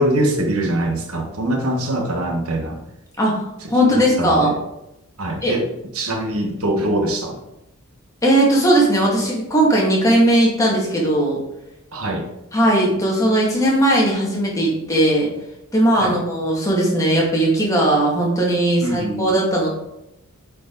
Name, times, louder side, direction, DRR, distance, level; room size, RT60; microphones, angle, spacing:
voice 1, 0.0-2.8 3.6-4.6 5.2-5.7 5.9-7.4 11.9-12.3 15.9-16.2 18.8-19.4, right 1 dB, 80° right, 3 dB, 1.3 m, -23 dB
voice 2, 3.2-4.5 5.4-5.6 8.2-11.4 12.5-15.3 15.7-19.7, right 1 dB, 15° left, -3 dB, 2.0 m, -18 dB
8.7 x 4.8 x 3.9 m, 0.86 s
head